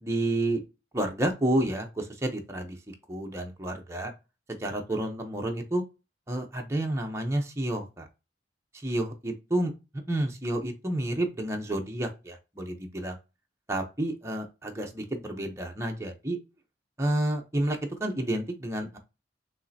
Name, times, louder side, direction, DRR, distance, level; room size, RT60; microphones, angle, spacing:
voice 1, 0.0-0.6 0.9-2.8 3.1-4.1 4.6-5.8 6.3-8.1 8.7-9.7 10.1-13.2 13.7-16.4 17.0-19.0, right 1 dB, 15° right, 2 dB, 0.8 m, -30 dB
5.4 x 3.2 x 2.8 m, 0.28 s
head